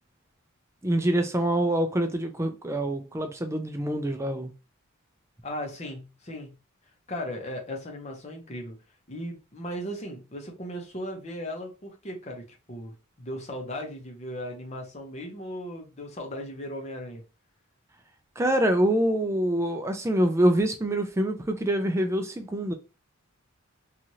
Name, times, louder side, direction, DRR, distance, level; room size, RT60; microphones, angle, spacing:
voice 1, 0.8-4.5 18.4-22.7, right 1 dB, 15° right, 0.3 m, -25 dB
voice 2, 5.4-6.5 7.1-8.8 9.1-17.2, equal, 30° left, 0.7 m, -37 dB
3.0 x 2.4 x 2.7 m
head